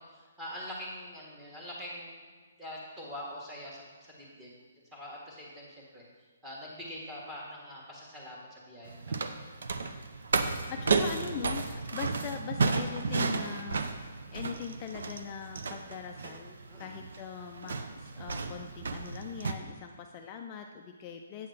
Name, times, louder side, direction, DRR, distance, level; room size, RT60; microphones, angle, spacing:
voice 1, 0.0-2.3 2.6-4.5 4.9-6.0 6.4-9.2 16.7-17.0, left 1 dB, 10° right, -5 dB, 1.5 m, -44 dB
sound 1, 8.8-19.5, right 4 dB, 70° right, 0.6 m, -33 dB
voice 2, 10.4-14.0 14.3-21.5, left 7 dB, 20° left, 3 dB, 0.3 m, -41 dB
8.4 x 3.9 x 6.4 m, 1.5 s
hypercardioid pair, 170°, 0 cm